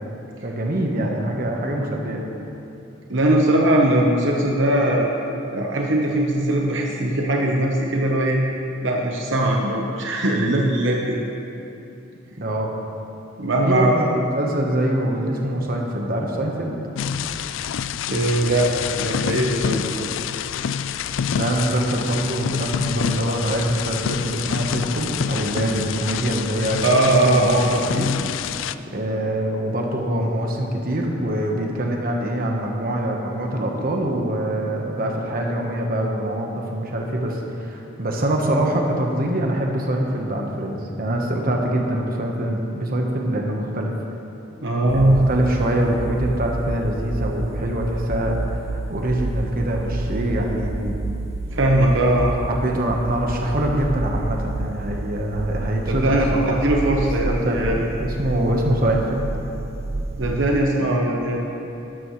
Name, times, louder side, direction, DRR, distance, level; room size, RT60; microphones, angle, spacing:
voice 1, 0.4-2.3 12.4-12.7 13.6-16.8 21.3-28.1 28.9-43.9 44.9-50.9 52.6-56.6 57.3-59.3, right 1 dB, 50° right, 0 dB, 1.2 m, -24 dB
voice 2, 3.1-5.1 5.5-8.4 8.8-11.2 13.4-14.0 18.1-18.7 19.0-20.1 26.8-27.8 44.6-45.2 51.5-52.4 55.9-57.8 60.2-61.4, right 1 dB, 70° right, -1 dB, 1.1 m, -20 dB
sound 1, 17.0-28.8, left 8 dB, 70° left, 0.3 m, -27 dB
sound 2, 44.9-60.6, right 2 dB, 30° right, 0.4 m, -29 dB
13.0 x 12.5 x 3.2 m, 2.8 s
head